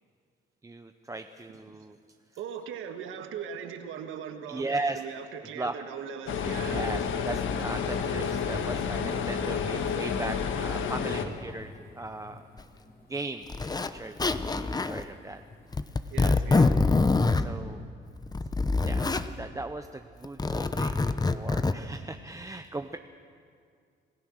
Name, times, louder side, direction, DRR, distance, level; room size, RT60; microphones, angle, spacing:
voice 1, 0.6-2.0 4.5-5.0 5.6-5.7 6.7-12.4 13.1-14.1 14.6-15.4 17.4-17.8 18.8-23.0, right 2 dB, 15° right, 7 dB, 0.7 m, -37 dB
voice 2, 2.4-6.9 16.1-16.8, right 7 dB, 90° right, 7 dB, 1.5 m, -39 dB
sound 1, 6.3-11.2, left 6 dB, 80° left, 1.5 m, -30 dB
Thunder / Rain, 6.4-16.2, left 3 dB, 45° left, 4.4 m, -45 dB
Zipper (clothing), 12.6-12.7 13.5-13.9 14.2-15.0 15.7-17.5 18.2-19.2 20.2-21.7, left 3 dB, 20° left, 0.8 m, -25 dB
27.0 x 16.0 x 6.4 m, 2.2 s
cardioid pair, 90°, 20 cm